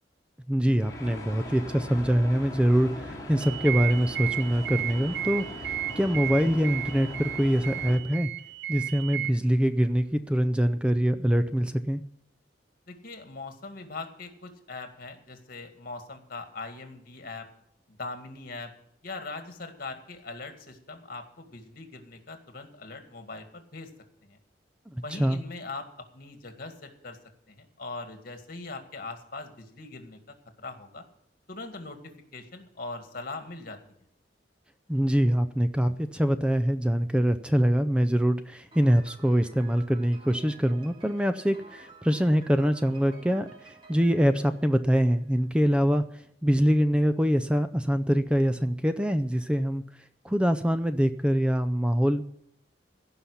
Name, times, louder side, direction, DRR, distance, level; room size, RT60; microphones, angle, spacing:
voice 1, 0.5-8.3 8.7-12.0 24.9-25.4 34.9-49.8 50.2-52.2, equal, 5° right, 10 dB, 0.4 m, -24 dB
sound 1, 0.8-8.0, left 1 dB, 20° left, 3.0 m, -40 dB
sound 2, 3.4-9.3, right 14 dB, 80° right, 0.6 m, -34 dB
voice 2, 12.9-17.5 17.9-18.7 19.0-23.9 24.2-24.4 25.0-27.2 27.5-30.2 30.6-31.0 31.5-33.8, left 3 dB, 55° left, 6 dB, 2.1 m, -41 dB
Piano, 38.7-45.5, right 4 dB, 30° right, 2.7 m, -52 dB
16.5 x 5.7 x 9.9 m, 0.73 s
head